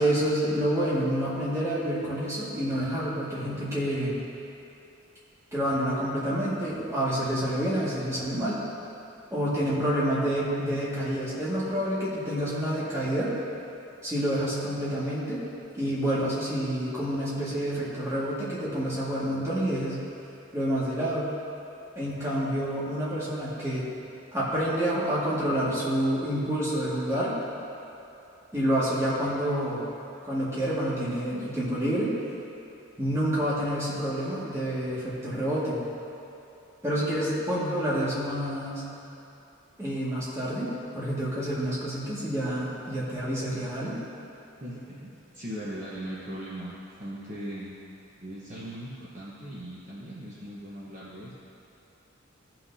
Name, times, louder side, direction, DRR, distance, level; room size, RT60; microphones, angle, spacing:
voice 1, 0.0-4.2 5.5-8.6 9.3-13.3 14.0-15.4 15.7-20.0 20.5-21.3 22.0-23.8 24.3-27.4 28.5-29.9 30.3-32.1 33.0-35.8 36.8-38.9 39.8-40.7 40.9-44.0, equal, 15° right, -9 dB, 1.9 m, -28 dB
voice 2, 44.6-46.7 47.0-47.7 48.2-51.3, right 1 dB, 35° right, -8 dB, 1.1 m, -39 dB
16.5 x 5.8 x 2.8 m, 3.0 s
head